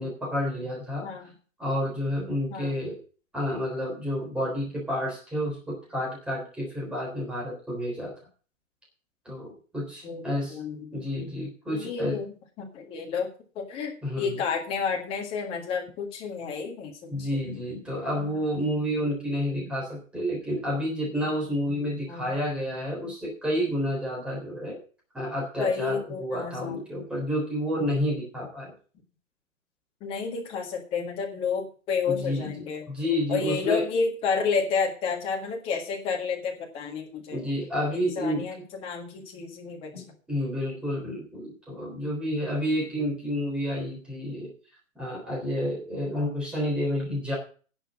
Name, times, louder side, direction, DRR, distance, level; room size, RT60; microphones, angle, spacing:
voice 1, 0.0-1.1 1.6-3.0 3.3-8.1 9.3-10.6 10.9-12.2 14.0-14.4 17.1-24.8 25.1-28.7 32.1-33.9 37.3-38.5 39.9-44.5 45.0-47.3, equal, 5° right, -3 dB, 3.6 m, -30 dB
voice 2, 1.0-1.3 2.5-2.8 10.0-10.2 10.5-10.9 11.7-12.3 12.6-13.3 13.5-17.4 22.1-22.4 25.6-27.0 30.0-32.8 33.3-37.4 37.9-39.9, left 5 dB, 15° left, 2 dB, 1.7 m, -30 dB
10.5 x 7.0 x 7.4 m, 0.38 s
hypercardioid pair, 160°, 41 cm